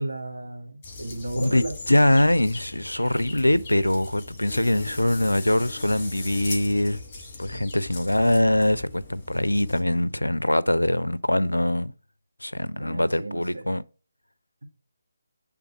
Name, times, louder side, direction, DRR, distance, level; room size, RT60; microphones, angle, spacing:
voice 1, 0.0-1.7 12.8-13.6, right 1 dB, 70° right, 1.8 m, -33 dB
sound 1, 0.8-9.8, left 3 dB, 25° left, 2.3 m, -40 dB
voice 2, 1.4-7.0 7.4-11.9 12.4-13.8, left 1 dB, 80° left, 0.4 m, -23 dB
8.2 x 3.6 x 4.6 m
figure-of-eight pair, 150°, 0 cm